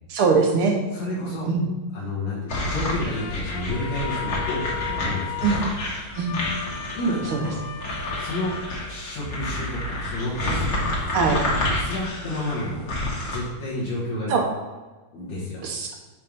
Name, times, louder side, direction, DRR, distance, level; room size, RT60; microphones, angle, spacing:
voice 1, 0.1-0.8 1.5-1.7 5.4-5.6 6.1-6.4 7.3-7.4 11.1-11.4 14.3-14.5 15.6-15.9, right 5 dB, 70° right, 2 dB, 1.3 m, -21 dB
voice 2, 0.9-1.5 1.9-5.6 6.9-7.6 8.2-10.9 11.8-13.0 13.2-14.3 15.1-15.6, left 1 dB, 65° left, -6 dB, 2.7 m, -30 dB
sound 1, 2.5-13.4, left 1 dB, 45° left, 1.9 m, -29 dB
sound 2, 3.1-9.4, left 8 dB, 90° left, 2.2 m, -36 dB
9.2 x 3.5 x 5.2 m, 1.2 s
omnidirectional pair, 3.4 m